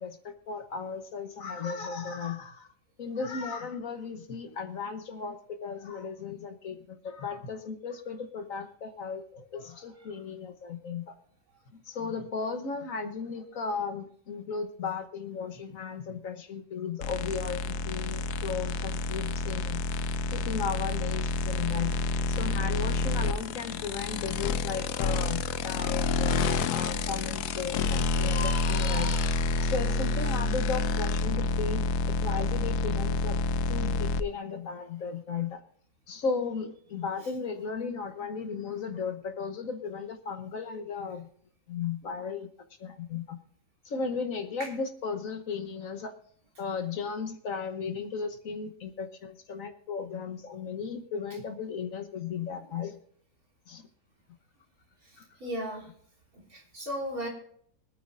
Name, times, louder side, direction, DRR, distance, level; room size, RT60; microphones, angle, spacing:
voice 1, 0.0-2.7 3.0-11.1 11.9-19.8 20.3-21.9 22.3-33.4 33.7-35.6 36.1-41.3 41.7-42.5 42.8-43.4 43.8-46.1 46.6-53.0 53.7-53.8 55.2-55.3, left 5 dB, 60° left, 7 dB, 1.4 m, -35 dB
sound 1, 17.0-34.2, left 3 dB, 80° left, 1.2 m, -29 dB
voice 2, 55.4-55.9 56.5-57.3, equal, 65° right, -2 dB, 3.7 m, -35 dB
24.5 x 9.4 x 2.5 m, 0.63 s
omnidirectional pair, 1.7 m